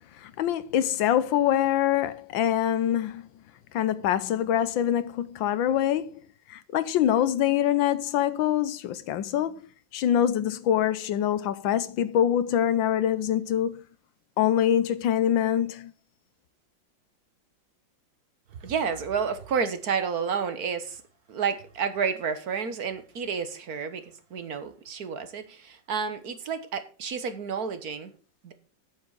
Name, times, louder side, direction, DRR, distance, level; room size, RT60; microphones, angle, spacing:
voice 1, 0.2-3.3 3.7-6.2 6.5-9.6 9.9-13.8 14.4-15.9, left 10 dB, 80° left, 1.5 m, -25 dB
voice 2, 18.5-21.0 21.3-28.1 28.4-28.5, right 6 dB, 55° right, 1.5 m, -30 dB
8.4 x 7.7 x 6.2 m
omnidirectional pair, 2.1 m